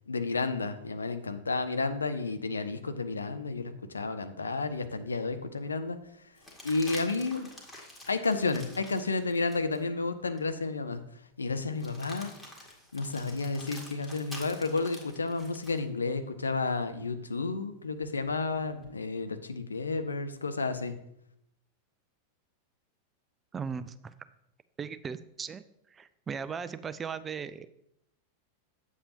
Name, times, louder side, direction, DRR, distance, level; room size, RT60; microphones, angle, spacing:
voice 1, 0.1-6.0 6.6-7.5 8.1-11.0 11.4-12.3 12.9-20.9, left 3 dB, 75° left, 10 dB, 0.6 m, -31 dB
sound 1, 4.8-4.9 6.4-9.8 10.4-10.5 11.7-15.8 18.0-18.9, left 1 dB, 10° left, 2.0 m, -48 dB
voice 2, 23.5-24.1 24.8-25.6 25.9-27.7, right 6 dB, 20° right, 14 dB, 0.4 m, -37 dB
8.4 x 7.1 x 2.8 m, 0.77 s
figure-of-eight pair, 90°, 0 cm